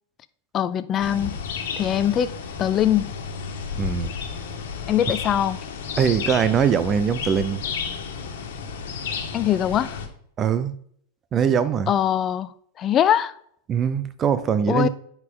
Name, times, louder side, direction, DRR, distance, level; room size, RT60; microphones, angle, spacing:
voice 1, 0.5-1.4 1.8-2.3 2.6-3.1 4.9-5.7 9.3-10.0 11.9-12.5 12.8-13.3 14.7-14.9, left 10 dB, 30° left, 0.5 m, -22 dB
sound 1, 1.0-10.1, left 6 dB, 75° left, 1.5 m, -32 dB
voice 2, 3.8-4.1 6.0-7.6 10.4-10.7 11.3-11.9 13.7-14.9, right 7 dB, 25° right, 0.6 m, -22 dB
9.6 x 4.9 x 3.8 m
supercardioid pair, 130°, 0 cm